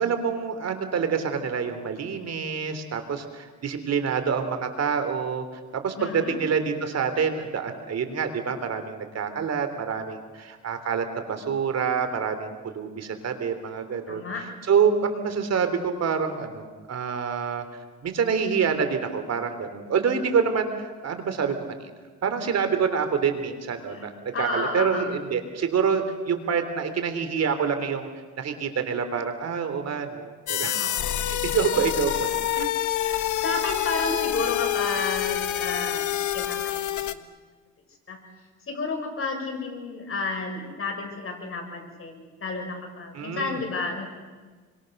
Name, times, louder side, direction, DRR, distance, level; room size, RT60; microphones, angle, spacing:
voice 1, 0.0-5.4 5.8-17.6 18.0-21.6 22.2-24.1 24.4-28.1 28.4-30.8 31.2-32.7 43.1-43.6, right 6 dB, 55° right, 8 dB, 3.5 m, -27 dB
voice 2, 6.0-6.4 14.1-14.4 23.9-24.0 24.3-25.1 30.7-31.3 33.0-36.1 36.3-37.2 38.1-38.2 38.7-44.1, left 3 dB, 45° left, 3 dB, 7.3 m, -32 dB
sound 1, 30.5-37.1, left 11 dB, 75° left, 1.4 m, -27 dB
29.5 x 23.5 x 6.7 m, 1.4 s
cardioid pair, 90°, 30 cm